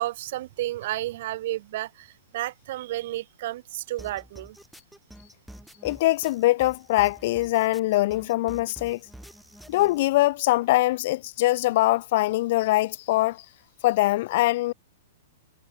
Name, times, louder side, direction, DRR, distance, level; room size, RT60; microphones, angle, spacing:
voice 1, 0.0-4.6, right 15 dB, 45° right, 2.3 m, -32 dB
sound 1, 4.0-10.0, equal, ahead, 4.0 m, -47 dB
voice 2, 5.8-9.0 9.7-13.4 13.8-14.7, left 17 dB, 40° left, 0.9 m, -23 dB
hypercardioid pair, 170°, 0 cm